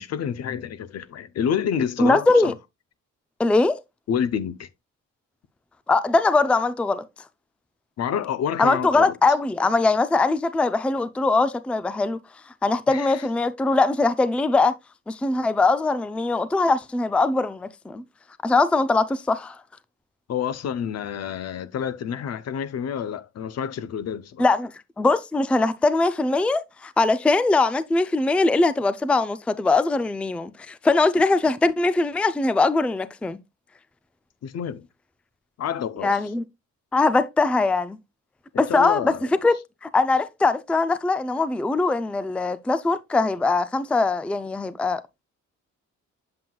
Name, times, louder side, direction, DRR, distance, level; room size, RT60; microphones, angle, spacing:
voice 1, 0.0-2.5 4.1-4.7 8.0-9.2 12.9-13.2 20.3-24.4 34.4-34.9 35.6-36.2 38.7-39.3, left 8 dB, 60° left, 0.7 m, -28 dB
voice 2, 2.0-2.5 3.4-3.8 5.9-7.1 8.6-12.2 12.6-14.7 15.1-18.0 18.4-19.6 24.4-24.7 25.0-33.4 36.0-36.4 36.9-38.0 38.6-39.1 39.4-39.6 39.8-45.0, left 3 dB, 5° left, 0.4 m, -21 dB
7.6 x 7.5 x 2.3 m
cardioid pair, 90°, 30 cm